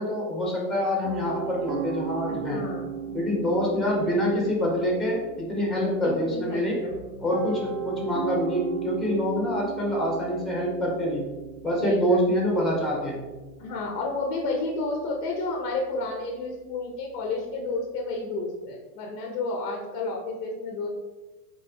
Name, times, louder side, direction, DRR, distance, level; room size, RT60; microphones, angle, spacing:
voice 1, 0.0-2.6 3.1-6.8 7.2-11.2 11.6-13.3, equal, ahead, -2 dB, 1.1 m, -26 dB
Piano, 1.0-18.2, right 7 dB, 65° right, 0.6 m, -38 dB
voice 2, 2.3-3.2 6.0-7.0 7.2-7.3 11.7-12.2 13.6-20.9, left 3 dB, 35° left, 1 dB, 0.6 m, -31 dB
4.4 x 3.0 x 3.5 m, 1.2 s
hypercardioid pair, 130°, 50 cm